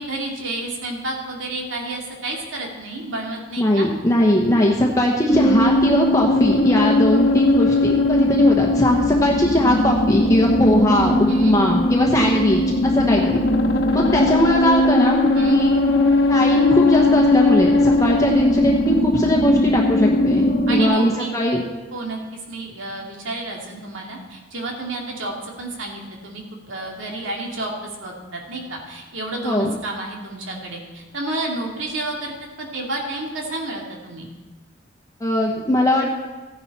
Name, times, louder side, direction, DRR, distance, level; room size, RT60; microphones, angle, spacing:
voice 1, 0.0-3.9 11.3-11.6 15.3-15.6 20.7-21.3 21.9-22.2 22.5-34.3, right 2 dB, 85° right, 0 dB, 2.6 m, -30 dB
voice 2, 3.6-13.4 13.9-15.7 16.3-20.4 20.7-21.6 29.4-29.7 35.2-36.2, left 1 dB, 15° left, -1 dB, 1.1 m, -19 dB
sound 1, 5.3-20.8, left 2 dB, 70° left, 1.2 m, -19 dB
15.0 x 10.5 x 4.3 m, 1.2 s
head